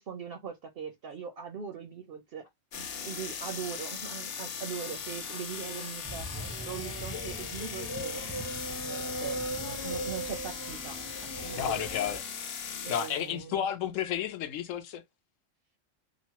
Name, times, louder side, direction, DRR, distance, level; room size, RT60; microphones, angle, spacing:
voice 1, 0.0-2.4 2.7-6.3 6.7-8.2 8.8-11.0 11.4-11.9 12.8-13.7, right 7 dB, 60° right, 0.6 m, -41 dB
sound 1, 2.7-13.3, left 6 dB, 60° left, 0.7 m, -39 dB
sound 2, 6.0-12.2, right 1 dB, 20° right, 0.5 m, -39 dB
voice 2, 11.6-12.2 12.9-15.0, left 9 dB, 80° left, 1.0 m, -31 dB
3.0 x 2.1 x 2.8 m
omnidirectional pair, 1.3 m